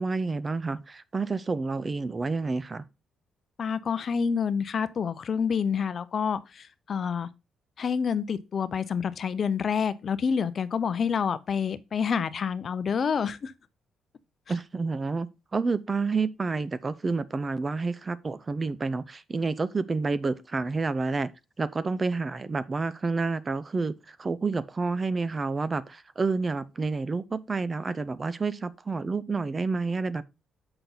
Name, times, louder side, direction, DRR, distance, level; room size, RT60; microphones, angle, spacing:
voice 1, 0.0-2.8 14.5-21.3 21.6-30.2, right 4 dB, 30° right, 0.6 m, -29 dB
voice 2, 3.6-7.3 7.8-13.5, left 6 dB, 50° left, 0.6 m, -28 dB
6.9 x 5.9 x 3.9 m
cardioid pair, 90°, 0 cm